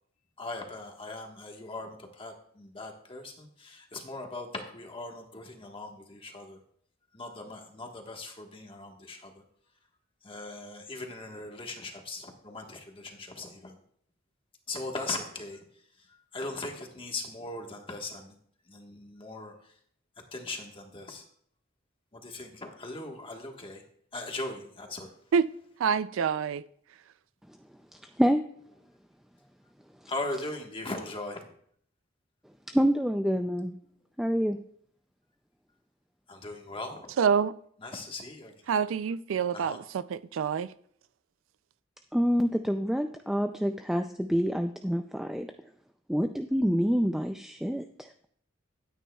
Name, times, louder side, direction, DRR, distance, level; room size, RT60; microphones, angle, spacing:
voice 1, 0.4-6.6 7.1-9.4 10.2-13.7 14.7-15.6 16.0-18.4 18.7-19.7 20.3-21.2 22.1-23.8 24.1-25.1 30.1-31.4 36.3-37.1 37.8-38.5 39.5-39.8, left 2 dB, 25° left, 1.4 m, -39 dB
voice 2, 25.8-26.6 37.2-37.5 38.7-40.7, right 6 dB, 75° right, 0.4 m, -26 dB
voice 3, 28.2-28.5 32.7-33.7 34.2-34.6 42.1-45.5 46.1-48.1, equal, ahead, 0.3 m, -27 dB
13.0 x 9.2 x 2.3 m
head